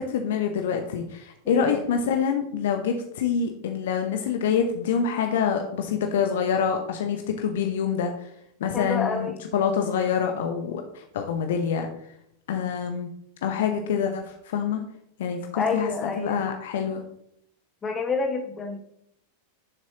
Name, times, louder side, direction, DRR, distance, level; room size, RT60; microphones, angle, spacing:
voice 1, 0.0-8.1 8.6-11.9 12.5-13.1 13.4-14.8 15.2-17.0, left 7 dB, 55° left, 5 dB, 0.9 m, -26 dB
voice 2, 1.5-1.8 8.7-9.4 15.5-16.4 17.8-18.8, left 4 dB, 20° left, 3 dB, 1.7 m, -28 dB
10.0 x 7.4 x 3.0 m, 0.74 s
figure-of-eight pair, 90°, 0 cm